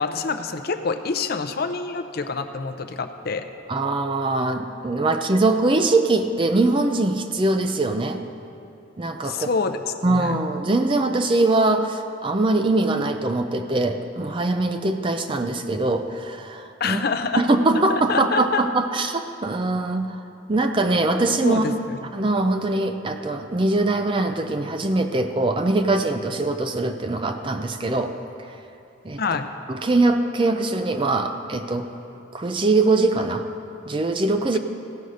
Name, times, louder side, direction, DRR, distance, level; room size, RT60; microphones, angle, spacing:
voice 1, 0.0-3.5 9.2-9.8 10.1-10.4 16.8-17.4 17.9-18.6 21.4-22.0 29.2-29.5, left 4 dB, 50° left, 9 dB, 0.5 m, -26 dB
voice 2, 3.7-8.2 9.0-9.5 10.0-17.0 17.3-20.2 20.5-21.7 22.1-28.1 29.0-29.2 29.7-31.9 32.3-33.5 33.9-34.6, right 2 dB, 25° right, 7 dB, 0.4 m, -22 dB
15.5 x 5.4 x 6.3 m, 2.7 s
head